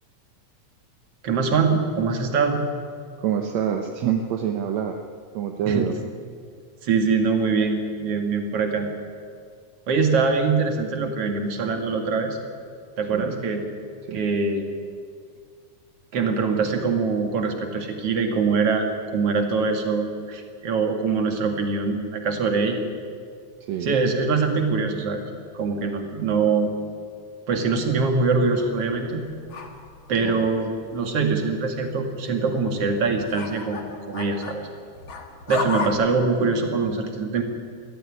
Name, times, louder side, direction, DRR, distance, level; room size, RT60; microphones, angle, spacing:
voice 1, 1.2-2.6 5.7-5.9 6.8-8.9 9.9-12.4 13.0-13.6 14.1-14.7 16.1-22.8 23.8-25.2 25.5-26.7 27.5-29.2 30.1-33.8 34.1-34.7 35.5-37.4, right 4 dB, 45° right, 4 dB, 2.9 m, -23 dB
voice 2, 3.2-5.0 5.3-5.9 11.0-11.3 13.1-13.4 14.1-14.2 23.7-24.0 30.2-30.5, right 8 dB, 65° right, 4 dB, 1.9 m, -27 dB
sound 1, 28.6-31.2 31.5-35.9, left 3 dB, 45° left, 2.3 m, -35 dB
20.5 x 14.0 x 9.9 m, 2.1 s
omnidirectional pair, 3.9 m